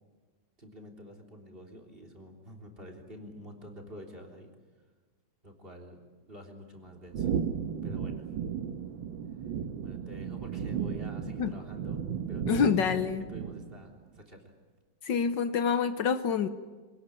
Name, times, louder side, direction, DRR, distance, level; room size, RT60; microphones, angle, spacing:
voice 1, 0.6-4.5 5.4-6.0 6.3-7.3 7.8-8.3 9.8-12.8 13.3-14.5, equal, 25° right, 2 dB, 3.7 m, -48 dB
sound 1, 7.1-13.9, right 7 dB, 80° right, 1.9 m, -35 dB
voice 2, 12.5-13.2 15.0-16.5, left 6 dB, 70° left, 11 dB, 1.6 m, -27 dB
26.5 x 18.5 x 9.8 m, 1.4 s
omnidirectional pair, 2.1 m